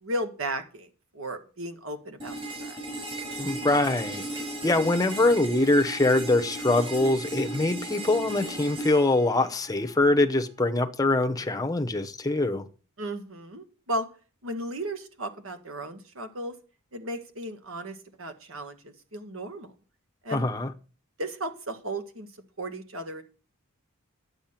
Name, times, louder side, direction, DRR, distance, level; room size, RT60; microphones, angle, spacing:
voice 1, 0.0-2.8 13.0-14.1 14.4-16.5 16.9-19.7 20.2-20.5 21.2-22.3 22.6-23.2, right 1 dB, 65° right, 1.6 m, -35 dB
sound 1, 2.2-10.2, right 2 dB, 25° right, 6.5 m, -36 dB
voice 2, 3.4-4.3 4.6-12.7 20.3-20.7, left 2 dB, 15° left, 0.8 m, -24 dB
10.5 x 8.3 x 5.8 m
head